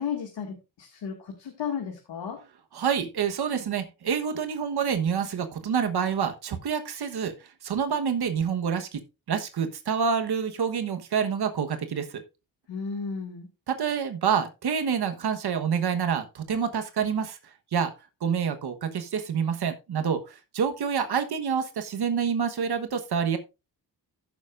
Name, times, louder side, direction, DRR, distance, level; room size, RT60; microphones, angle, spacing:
voice 1, 0.0-2.4 12.7-13.5, left 6 dB, 75° left, 1 dB, 2.1 m, -34 dB
voice 2, 2.7-9.0 9.3-12.2 13.7-17.4 17.7-17.9 18.2-23.4, right 7 dB, 65° right, 8 dB, 1.2 m, -27 dB
15.5 x 7.0 x 2.5 m, 0.27 s
cardioid pair, 80°, 42 cm